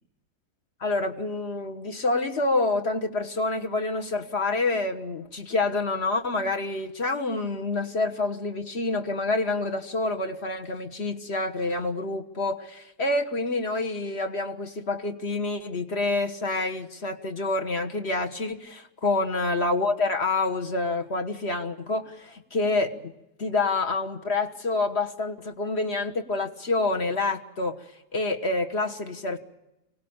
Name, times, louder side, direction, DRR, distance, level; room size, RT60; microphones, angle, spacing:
voice 1, 0.8-23.1 23.4-27.9 28.1-29.4, left 2 dB, 40° left, 5 dB, 1.6 m, -27 dB
25.0 x 18.5 x 8.8 m, 0.93 s
omnidirectional pair, 1.9 m